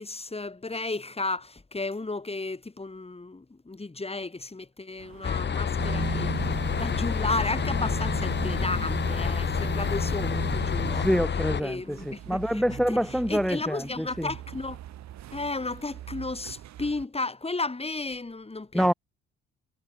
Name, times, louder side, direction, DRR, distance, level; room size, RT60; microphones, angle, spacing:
voice 1, 0.0-11.1 11.6-14.8 15.3-18.9, left 3 dB, 20° left, 3.2 m, -34 dB
sound 1, 5.0-17.1, right 12 dB, 65° right, 2.8 m, -46 dB
sound 2, 5.2-11.6, left 7 dB, 35° left, 1.2 m, -28 dB
sound 3, 5.8-11.2, right 6 dB, 35° right, 1.2 m, -34 dB
voice 2, 10.9-14.3 18.7-18.9, equal, ahead, 0.4 m, -26 dB
hypercardioid pair, 55°, 30 cm